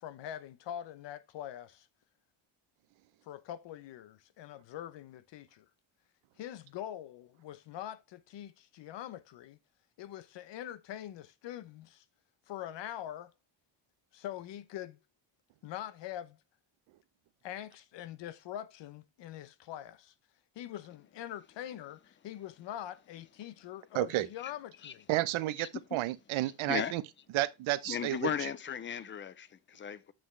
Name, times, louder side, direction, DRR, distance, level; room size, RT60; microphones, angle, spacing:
voice 1, 0.0-1.9 3.2-5.7 6.4-9.6 10.0-12.0 12.5-13.3 14.1-15.0 15.6-16.4 17.4-20.1 20.5-25.1, left 11 dB, 65° left, 0.8 m, -43 dB
voice 2, 23.9-24.3 25.1-27.0 27.3-28.5, right 16 dB, 80° right, 0.8 m, -31 dB
voice 3, 27.9-30.1, left 8 dB, 25° left, 0.5 m, -36 dB
7.7 x 6.0 x 3.2 m
cardioid pair, 135°, 47 cm